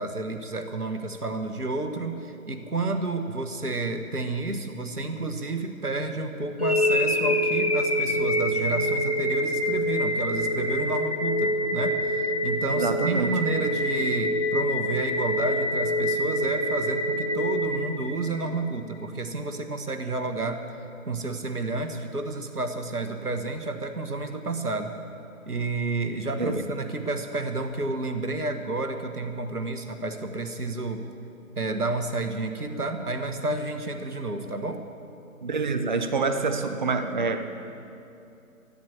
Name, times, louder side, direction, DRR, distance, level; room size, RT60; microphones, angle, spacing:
voice 1, 0.0-20.6 21.1-24.9 25.5-31.1 31.6-34.8, right 2 dB, 90° right, 6 dB, 1.4 m, -30 dB
sound 1, 6.6-18.6, equal, 25° left, 0.6 m, -26 dB
voice 2, 12.8-13.4 26.4-26.7 35.4-37.4, right 4 dB, 35° right, 8 dB, 0.7 m, -26 dB
13.0 x 12.0 x 7.2 m, 2.7 s
figure-of-eight pair, 145°, 44 cm